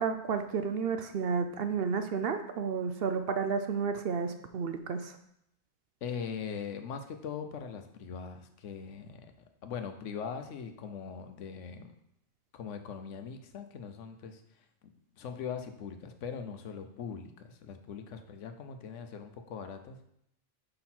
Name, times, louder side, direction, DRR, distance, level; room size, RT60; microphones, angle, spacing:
voice 1, 0.0-5.2, right 6 dB, 60° right, 8 dB, 0.7 m, -31 dB
voice 2, 6.0-9.3 9.6-11.9 12.5-14.4 15.1-20.0, left 6 dB, 85° left, 7 dB, 1.1 m, -41 dB
5.9 x 5.3 x 4.3 m, 0.76 s
omnidirectional pair, 1.2 m